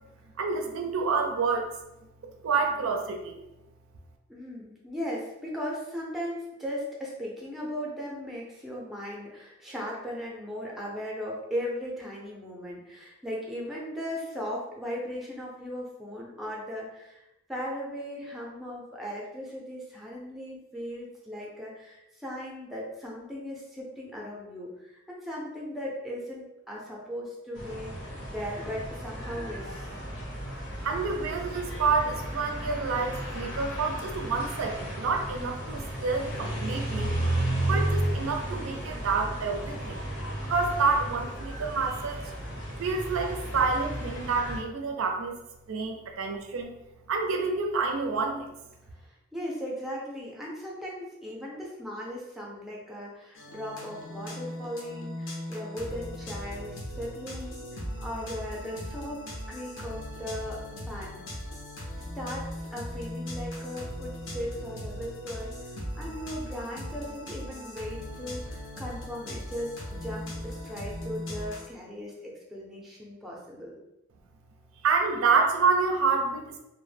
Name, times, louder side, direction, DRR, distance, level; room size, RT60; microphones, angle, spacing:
voice 1, 0.4-1.7 2.2-3.4 30.8-37.1 37.6-40.0 40.4-42.3 42.8-45.3 45.7-46.7 47.1-48.5 74.8-76.6, right 4 dB, 85° right, 3 dB, 0.4 m, -28 dB
voice 2, 4.3-29.9 49.0-59.2 59.5-60.6 60.9-61.2 62.1-73.8, equal, ahead, -3 dB, 0.4 m, -38 dB
sound 1, 27.5-44.6, right 1 dB, 85° left, 0.9 m, -33 dB
sound 2, 53.3-71.7, left 1 dB, 65° left, 0.5 m, -39 dB
2.0 x 2.0 x 3.2 m, 0.93 s
head